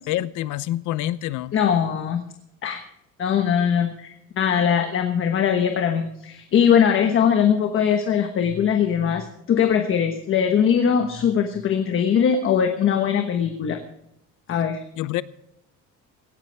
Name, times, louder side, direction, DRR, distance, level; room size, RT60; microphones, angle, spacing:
voice 1, 0.1-1.5 15.0-15.2, left 14 dB, 75° left, 17 dB, 0.8 m, -26 dB
voice 2, 1.5-2.2 2.6-2.8 3.2-13.8 14.5-14.8, left 8 dB, 40° left, 6 dB, 1.2 m, -21 dB
17.5 x 14.5 x 3.4 m, 0.80 s
cardioid pair, 165°, 31 cm